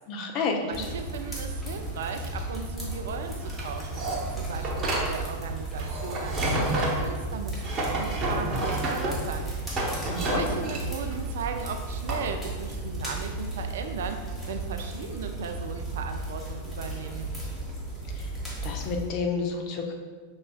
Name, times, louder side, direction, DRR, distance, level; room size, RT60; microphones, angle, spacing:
voice 1, 0.1-0.9 10.1-10.5 18.2-18.3 18.6-19.9, left 4 dB, 40° left, 2 dB, 0.6 m, -30 dB
voice 2, 0.6-6.5 6.7-9.5 10.2-14.2 14.5-17.3, right 6 dB, 60° right, 6 dB, 0.3 m, -37 dB
sound 1, 0.7-19.1, right 2 dB, 10° left, 1.3 m, -34 dB
sound 2, 3.1-12.3, right 1 dB, 30° right, 0.9 m, -30 dB
5.4 x 3.1 x 2.2 m, 1.5 s
figure-of-eight pair, 90°, 0 cm